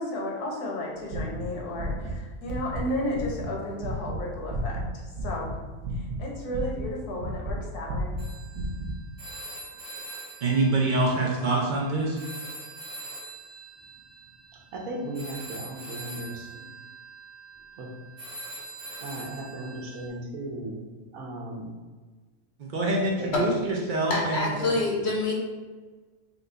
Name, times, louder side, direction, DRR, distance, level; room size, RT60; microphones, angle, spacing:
voice 1, 0.0-5.6 6.2-8.2, left 1 dB, 80° left, -1 dB, 1.4 m, -33 dB
sound 1, 1.1-2.2 2.4-2.8 3.1-5.5 5.8-7.6 7.9-8.9, right 1 dB, 50° right, 0.8 m, -32 dB
Telephone, 8.2-11.8 12.2-20.1, right 2 dB, 20° right, 1.0 m, -43 dB
voice 2, 10.4-12.2 22.6-24.4, right 2 dB, 85° right, -3 dB, 0.4 m, -25 dB
voice 3, 14.7-16.8 17.8-17.9 19.0-20.8 21.1-21.7 23.2-23.3, right 1 dB, 70° right, -1 dB, 1.2 m, -36 dB
voice 4, 24.1-25.3, left 2 dB, 60° left, -2 dB, 0.8 m, -26 dB
4.0 x 2.3 x 3.8 m, 1.4 s
omnidirectional pair, 1.6 m